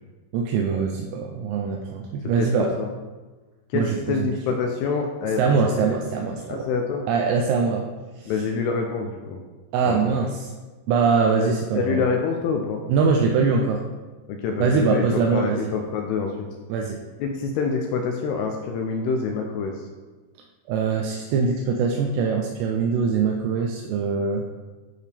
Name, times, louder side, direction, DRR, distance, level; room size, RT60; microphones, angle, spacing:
voice 1, 0.3-2.8 3.7-4.3 5.4-6.7 7.1-7.9 8.2-8.3 9.7-10.5 10.9-12.0 12.9-13.8 14.6-15.7 16.7-17.0 20.7-24.5, right 5 dB, 80° right, 1 dB, 2.6 m, -23 dB
voice 2, 3.7-6.0 6.5-7.1 8.3-9.4 9.9-10.1 11.4-12.8 14.3-16.5 17.2-19.9, left 5 dB, 85° left, 2 dB, 2.3 m, -26 dB
10.5 x 4.7 x 3.4 m, 1.3 s
omnidirectional pair, 5.2 m